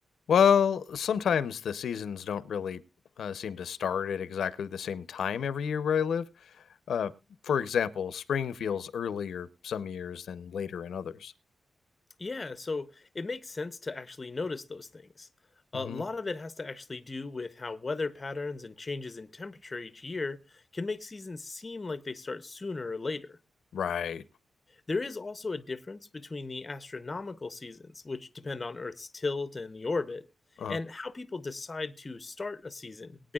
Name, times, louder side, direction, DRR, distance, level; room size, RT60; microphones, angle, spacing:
voice 1, 0.3-2.8 3.2-6.6 6.9-7.1 7.4-11.3 15.7-16.0 23.7-24.2 30.6-30.8, left 7 dB, 85° left, 0.6 m, -29 dB
voice 2, 12.2-15.3 15.7-23.4 24.9-30.3 30.7-33.3, left 3 dB, 25° left, 0.6 m, -36 dB
21.5 x 9.2 x 2.3 m
wide cardioid pair, 180°, 0 cm